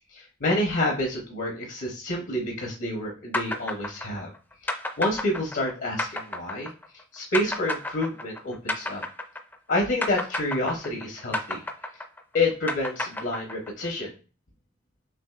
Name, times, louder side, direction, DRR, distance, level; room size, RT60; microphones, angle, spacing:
voice 1, 0.1-4.3 4.6-9.0 9.7-11.6 12.3-14.1, left 1 dB, 70° left, 0 dB, 0.9 m, -28 dB
sound 1, 3.3-9.7 10.0-13.9, left 2 dB, 10° left, 0.4 m, -31 dB
6.1 x 2.6 x 2.4 m, 0.35 s
head